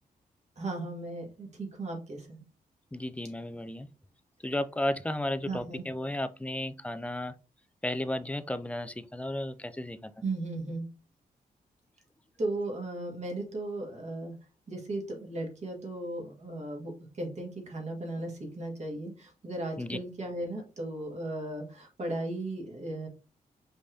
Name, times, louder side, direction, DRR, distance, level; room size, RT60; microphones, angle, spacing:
voice 1, 0.6-2.4 5.5-5.8 10.2-10.8 12.4-14.3 14.7-23.1, right 2 dB, 45° right, 1.8 m, -36 dB
voice 2, 2.9-3.9 4.4-7.3 7.8-10.1 19.8-20.0, left 1 dB, 10° left, 0.3 m, -33 dB
5.2 x 3.4 x 2.7 m
cardioid pair, 105°, 16 cm